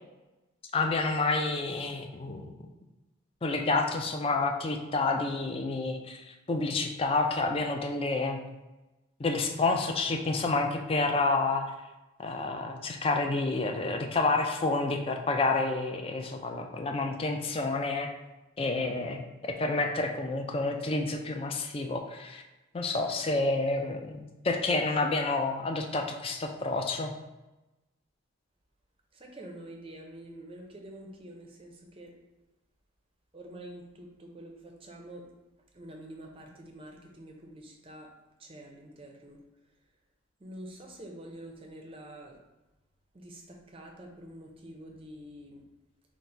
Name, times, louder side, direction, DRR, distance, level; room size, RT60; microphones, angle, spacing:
voice 1, 0.7-2.5 3.4-8.4 9.2-11.6 12.2-18.1 18.6-22.4 22.7-27.1, left 3 dB, 25° left, 3 dB, 0.3 m, -29 dB
voice 2, 29.1-32.1 33.3-35.3 35.7-38.1 38.4-39.4 40.4-42.4 43.1-45.6, right 1 dB, 25° right, 1 dB, 0.5 m, -47 dB
3.9 x 2.1 x 4.4 m, 1.0 s
head